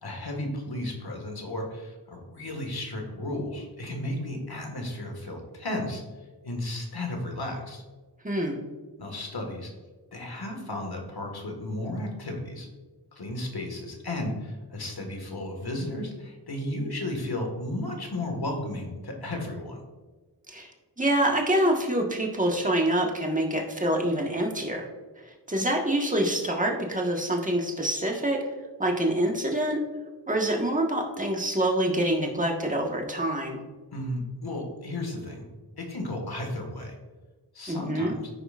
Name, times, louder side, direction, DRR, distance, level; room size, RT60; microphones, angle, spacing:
voice 1, 0.0-6.0 6.4-7.8 9.0-9.7 10.1-12.7 13.2-19.8 33.9-35.4 35.8-37.0 37.5-38.3, left 1 dB, 60° left, 2 dB, 1.7 m, -34 dB
voice 2, 8.2-8.6 20.5-20.7 21.0-24.9 25.5-28.4 28.8-29.8 30.3-33.6 37.7-38.1, right 1 dB, 20° right, 1 dB, 1.5 m, -26 dB
14.0 x 5.0 x 2.5 m, 1.3 s
wide cardioid pair, 50°, 42 cm